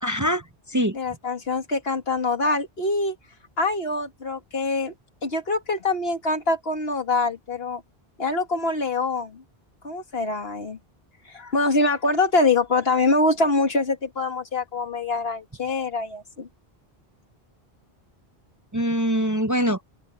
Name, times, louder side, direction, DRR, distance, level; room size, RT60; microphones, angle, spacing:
voice 1, 0.0-1.0 18.7-19.8, equal, 20° right, 0.7 m, -23 dB
voice 2, 0.9-3.2 3.6-4.9 5.2-7.8 8.2-9.4 9.8-10.8 11.3-16.5, left 3 dB, 75° left, 2.4 m, -24 dB
open air
omnidirectional pair, 1.0 m